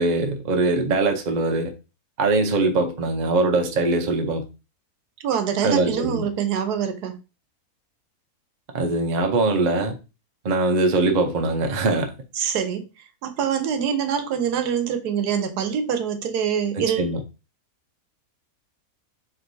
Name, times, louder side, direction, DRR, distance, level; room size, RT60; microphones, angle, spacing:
voice 1, 0.0-1.7 2.2-4.4 5.6-6.3 8.7-10.0 10.4-12.1 16.8-17.2, right 3 dB, 45° right, 0.6 m, -22 dB
voice 2, 5.2-7.2 12.4-12.9 13.2-17.1, right 8 dB, 90° right, 1.3 m, -25 dB
4.6 x 3.4 x 2.6 m
omnidirectional pair, 1.6 m